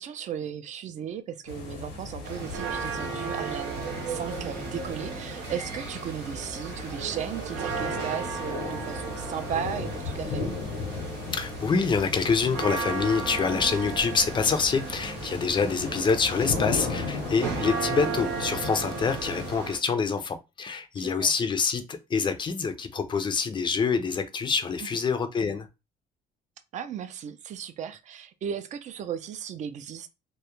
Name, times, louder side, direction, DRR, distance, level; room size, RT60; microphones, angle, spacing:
voice 1, 0.0-10.5 21.0-21.3 26.7-30.1, right 8 dB, 45° right, 0.4 m, -36 dB
sound 1, 1.5-19.6, left 3 dB, 85° left, 0.7 m, -36 dB
sound 2, 2.2-19.8, right 5 dB, 90° right, 0.7 m, -35 dB
voice 2, 11.3-25.7, left 5 dB, 30° left, 0.4 m, -26 dB
2.2 x 2.0 x 2.9 m
cardioid pair, 110°, 17 cm